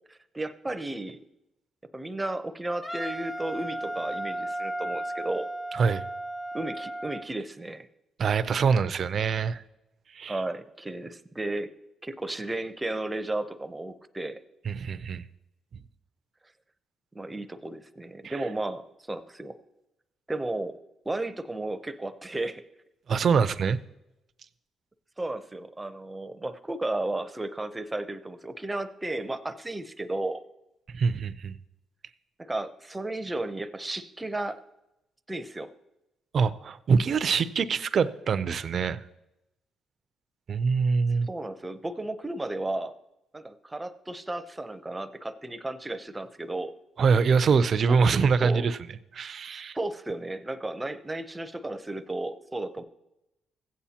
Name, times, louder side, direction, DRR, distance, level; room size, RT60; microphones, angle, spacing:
voice 1, 0.1-1.2 1.9-5.5 6.5-7.9 10.3-11.7 12.0-14.4 17.1-19.6 20.3-20.8 21.1-22.6 25.2-30.4 32.4-34.6 35.3-35.7 41.2-42.9 43.3-46.7 47.9-48.7 49.5-52.8, right 2 dB, 15° right, 10 dB, 0.7 m, -34 dB
Wind instrument woodwind instrument, 2.8-7.3, right 1 dB, 15° left, 1.0 m, -34 dB
voice 2, 8.2-9.6 10.1-10.4 14.7-15.2 18.2-18.3 23.1-23.8 30.9-31.6 36.3-39.0 40.5-41.3 47.0-48.8 49.1-49.8, right 5 dB, 50° right, 14 dB, 0.5 m, -24 dB
15.5 x 8.4 x 2.9 m, 0.90 s
cardioid pair, 90°, 0 cm